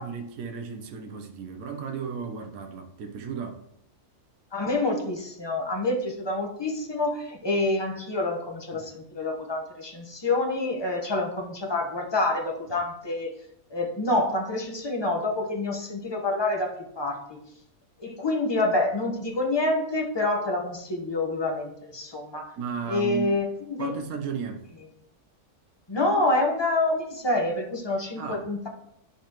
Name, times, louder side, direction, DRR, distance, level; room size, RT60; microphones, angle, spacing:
voice 1, 0.0-3.6 8.7-8.9 22.6-23.4 23.8-24.7 28.2-28.5, right 6 dB, 70° right, 1.2 m, -34 dB
voice 2, 4.5-13.3 13.7-17.4 18.0-22.5 22.8-23.9 25.9-28.7, left 2 dB, 20° left, 1.1 m, -27 dB
10.5 x 5.4 x 3.0 m
omnidirectional pair, 1.6 m